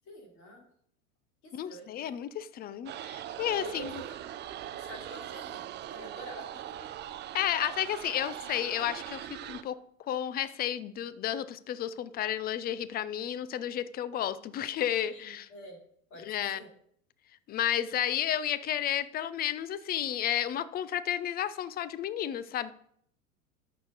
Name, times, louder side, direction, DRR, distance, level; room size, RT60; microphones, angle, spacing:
voice 1, 0.0-0.7 1.4-2.1 3.6-4.2 4.7-6.5 15.1-15.8 16.1-16.2 16.5-16.7, right 1 dB, 40° left, -1 dB, 3.8 m, -46 dB
voice 2, 1.5-3.9 7.3-9.8 10.1-15.5 16.3-16.6 17.5-22.7, left 10 dB, 20° left, 16 dB, 0.5 m, -32 dB
sound 1, 2.9-9.6, right 11 dB, 25° right, 0.6 m, -41 dB
12.0 x 6.6 x 4.0 m, 0.67 s
hypercardioid pair, 90°, 43 cm